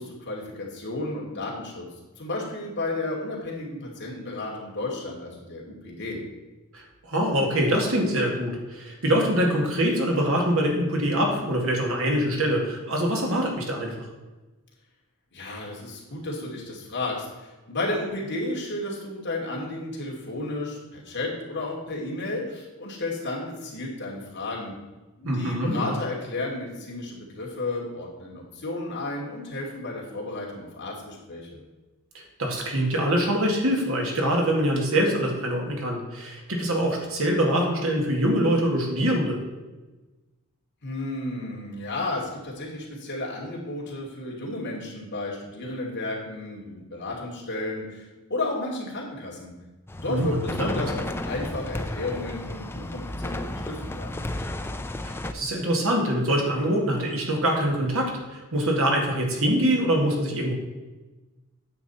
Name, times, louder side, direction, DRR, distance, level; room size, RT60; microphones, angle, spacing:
voice 1, 0.0-1.9 2.2-6.2 15.3-24.7 25.2-31.6 40.8-49.5 50.0-54.2, left 2 dB, 50° left, -3 dB, 2.6 m, -33 dB
voice 2, 6.7-13.9 25.2-25.9 32.1-39.4 50.1-50.8 55.0-60.5, equal, 65° right, 0 dB, 2.0 m, -24 dB
sound 1, 49.9-55.3, left 1 dB, 10° left, 0.4 m, -33 dB
9.4 x 7.4 x 4.2 m, 1.2 s
head